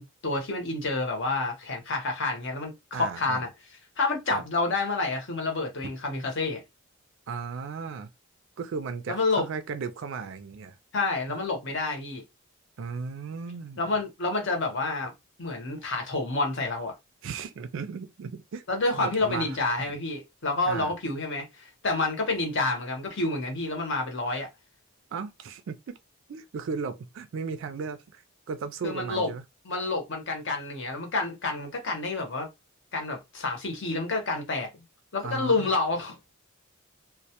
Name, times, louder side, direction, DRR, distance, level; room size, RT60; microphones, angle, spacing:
voice 1, 0.0-3.5 4.0-6.6 9.1-9.5 10.9-12.2 13.8-15.1 15.4-16.9 18.7-24.5 28.8-29.3 29.6-32.5 32.9-34.7 35.1-36.3, left 3 dB, 55° left, 0.8 m, -29 dB
voice 2, 2.9-3.5 4.3-4.4 7.3-8.1 8.6-10.8 12.8-13.8 17.2-18.6 19.0-19.6 19.9-20.0 20.7-20.9 24.3-24.4 25.1-26.0 26.3-28.2 28.5-29.4 35.2-35.7, right 5 dB, 60° right, 0.3 m, -35 dB
2.1 x 2.1 x 2.8 m
head